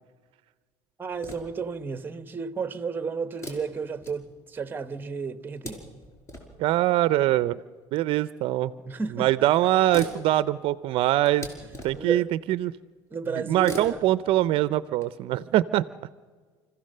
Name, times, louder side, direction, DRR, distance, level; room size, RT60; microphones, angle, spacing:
voice 1, 1.0-5.8 8.8-9.5 11.9-12.3 13.1-14.0, right 5 dB, 20° right, 1.0 m, -32 dB
sound 1, 1.1-1.7 3.3-4.7 5.3-6.7 7.8-7.9 9.0-9.1 9.4-9.5 9.7-12.2 13.5-15.0, equal, 30° left, 5.1 m, -42 dB
voice 2, 6.6-7.6 7.9-8.7 9.2-11.5 11.8-12.7 13.4-15.8, right 14 dB, 60° right, 0.6 m, -23 dB
29.0 x 15.5 x 6.7 m
cardioid pair, 125°, 10 cm